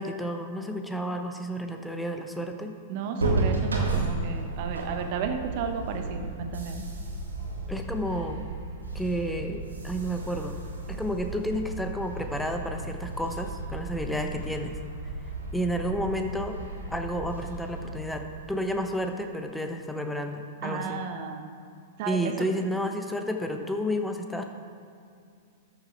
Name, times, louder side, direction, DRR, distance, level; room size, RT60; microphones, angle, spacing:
voice 1, 0.0-2.8 7.7-8.4 8.9-10.6 10.9-14.8 15.5-16.6 16.9-21.0 22.0-24.4, equal, 5° left, 4 dB, 0.9 m, -31 dB
voice 2, 2.9-6.8 20.6-21.5 22.0-22.2, right 6 dB, 45° right, 6 dB, 1.1 m, -33 dB
sound 1, 3.2-18.9, right 2 dB, 75° right, 2.0 m, -34 dB
13.0 x 6.7 x 4.5 m, 2.3 s
figure-of-eight pair, 100°, 0 cm